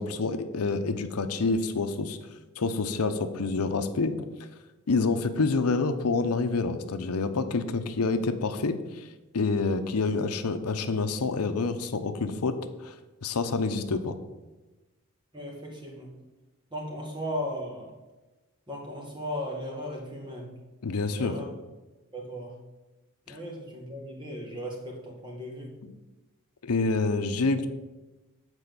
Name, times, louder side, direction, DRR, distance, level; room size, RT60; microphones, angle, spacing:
voice 1, 0.0-2.2 2.6-4.1 4.9-9.1 9.3-12.6 12.8-12.9 13.2-14.2 20.8-21.4 23.3-23.4 25.8-25.9 26.6-27.7, left 3 dB, 85° left, 9 dB, 0.7 m, -27 dB
voice 2, 15.3-16.1 16.7-17.9 18.7-20.5 21.1-21.5 22.1-22.6 23.3-25.8, equal, 20° right, 0 dB, 1.7 m, -36 dB
8.3 x 4.4 x 6.7 m, 1.1 s
head